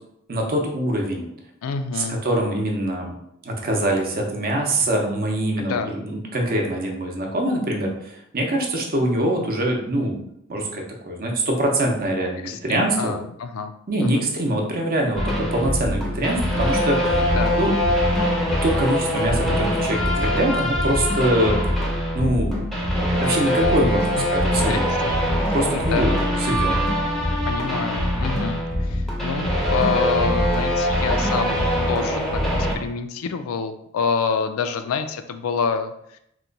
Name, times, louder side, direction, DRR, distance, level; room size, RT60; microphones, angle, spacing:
voice 1, 0.3-1.3 1.9-3.1 3.4-10.2 10.5-13.1 13.9-17.7 18.6-21.8 22.1-22.6 23.2-24.8 25.5-26.1 26.4-26.8, right 1 dB, 45° right, 1 dB, 0.7 m, -24 dB
voice 2, 1.6-2.2 5.6-5.9 12.4-14.2 17.2-17.6 24.2-24.3 24.6-25.0 25.3-26.1 27.5-36.2, left 5 dB, 85° left, 8 dB, 0.3 m, -27 dB
sound 1, 15.2-32.7, equal, ahead, 0.6 m, -22 dB
2.9 x 2.2 x 3.8 m, 0.76 s
head